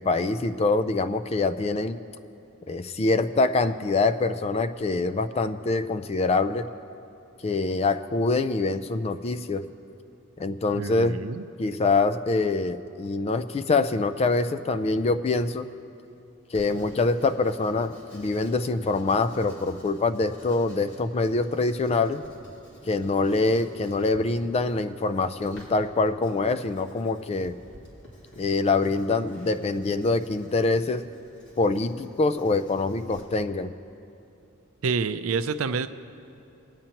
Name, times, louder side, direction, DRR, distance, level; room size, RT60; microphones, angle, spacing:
voice 1, 0.0-2.0 2.7-6.7 7.4-9.7 10.4-11.2 11.6-15.7 16.5-22.2 22.9-27.5 28.4-31.1 31.6-33.7, left 3 dB, 30° left, 12 dB, 0.4 m, -25 dB
voice 2, 10.7-11.4 34.8-35.9, right 5 dB, 75° right, 11 dB, 0.5 m, -27 dB
Writing, 16.5-33.2, equal, 60° left, 2.7 m, -51 dB
23.5 x 9.0 x 2.9 m, 2.7 s
head